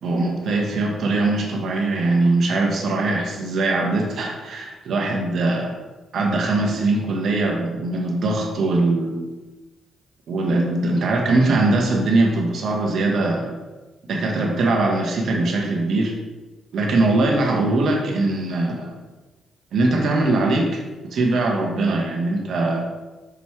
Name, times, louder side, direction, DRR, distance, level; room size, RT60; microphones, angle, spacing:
voice 1, 0.0-5.7 6.1-9.3 10.3-13.5 14.1-16.1 16.7-18.9 19.7-22.8, right 2 dB, 65° right, 1 dB, 1.3 m, -21 dB
6.1 x 5.3 x 3.2 m, 1.2 s
supercardioid pair, 65°, 0 cm